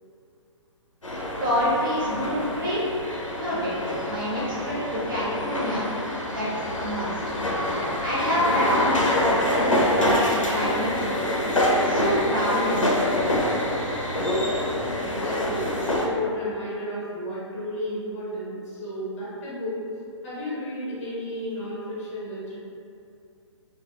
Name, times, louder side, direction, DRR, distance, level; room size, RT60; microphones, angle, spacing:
sound 1, 1.0-16.1, left 1 dB, 85° left, 0.5 m, -26 dB
voice 1, 1.4-2.8 3.3-3.7 4.0-5.9 6.3-6.5 6.8-7.4 8.0-11.2 11.8-12.8, equal, 40° right, -7 dB, 0.8 m, -27 dB
voice 2, 15.0-19.8 20.2-22.6, equal, 35° left, -8 dB, 0.8 m, -33 dB
2.9 x 2.3 x 2.4 m, 2.6 s
figure-of-eight pair, 130°, 16 cm